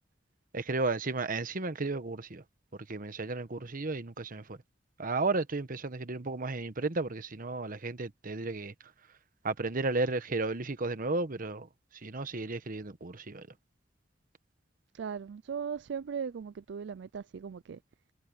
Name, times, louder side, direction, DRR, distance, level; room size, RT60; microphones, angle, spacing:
voice 1, 0.5-2.4 2.9-4.6 5.0-8.7 9.4-11.7 12.0-13.5, right 3 dB, 50° right, 1.1 m, -33 dB
voice 2, 14.9-17.8, right 6 dB, 65° right, 0.4 m, -38 dB
head